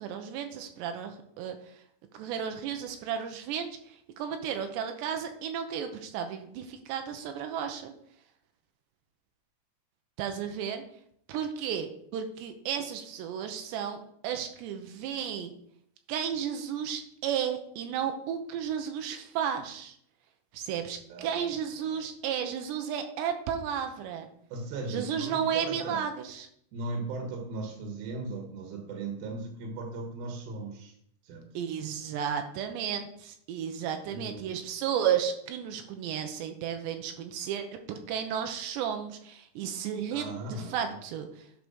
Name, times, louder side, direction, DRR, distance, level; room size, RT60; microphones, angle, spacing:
voice 1, 0.0-1.6 2.1-7.9 10.2-10.8 11.3-15.5 16.1-20.0 20.5-24.3 24.9-26.5 31.5-41.4, right 8 dB, 85° right, 6 dB, 3.1 m, -33 dB
voice 2, 21.1-21.5 21.8-22.0 24.5-26.0 26.7-30.9 31.2-31.5 33.9-34.5 40.1-41.0, right 3 dB, 65° right, 2 dB, 3.1 m, -38 dB
11.0 x 4.8 x 6.3 m, 0.68 s
omnidirectional pair, 4.9 m